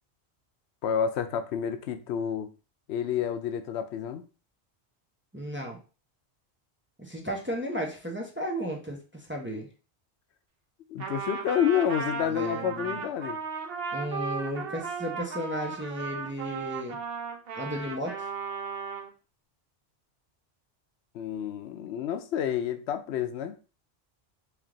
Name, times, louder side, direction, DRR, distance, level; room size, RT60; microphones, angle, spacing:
voice 1, 0.8-2.5 2.9-4.2 10.9-13.4 21.1-23.6, left 8 dB, 85° left, 0.8 m, -29 dB
voice 2, 5.3-5.8 7.0-9.7 12.3-13.0 13.9-17.0 17.6-18.3, equal, 10° right, 0.7 m, -34 dB
Trumpet, 11.0-19.1, right 5 dB, 65° right, 0.9 m, -36 dB
3.4 x 3.1 x 3.7 m
omnidirectional pair, 1.1 m